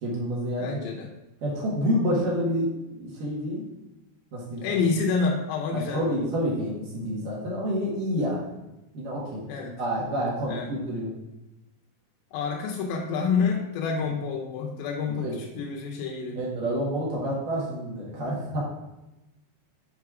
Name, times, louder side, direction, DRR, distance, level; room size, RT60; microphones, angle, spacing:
voice 1, 0.0-0.8 1.4-3.6 4.3-4.8 5.7-8.5 8.9-9.4 9.8-11.1 15.1-15.4 16.4-18.6, equal, 60° right, -5 dB, 3.1 m, -28 dB
voice 2, 0.6-1.1 4.6-6.1 9.5-9.8 10.5-10.7 12.3-16.4, left 5 dB, 90° left, -1 dB, 3.1 m, -28 dB
7.6 x 4.6 x 4.8 m, 0.96 s
omnidirectional pair, 4.9 m